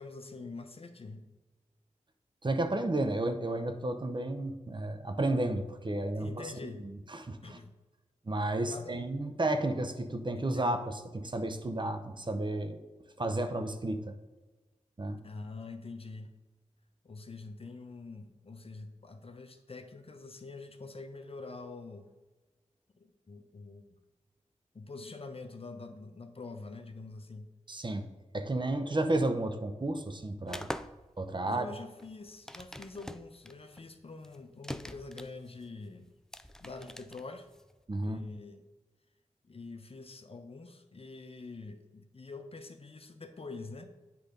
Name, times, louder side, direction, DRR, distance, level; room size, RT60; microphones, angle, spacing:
voice 1, 0.0-1.4 6.0-6.9 7.4-7.8 8.7-8.9 10.4-10.7 15.2-16.3 17.0-22.1 23.0-23.8 24.7-27.5 31.4-36.1 36.6-37.5 38.0-38.6 39.4-43.9, left 3 dB, 50° left, 6 dB, 0.7 m, -45 dB
voice 2, 2.4-6.5 6.8-7.6 8.3-12.8 13.2-14.2 15.0-15.2 27.7-28.1 28.3-30.7 31.2-31.7 37.9-38.2, right 2 dB, 35° right, 7 dB, 0.7 m, -32 dB
sound 1, 30.5-37.8, equal, 5° left, 0.3 m, -44 dB
8.3 x 3.4 x 5.1 m, 1.2 s
cardioid pair, 40°, 13 cm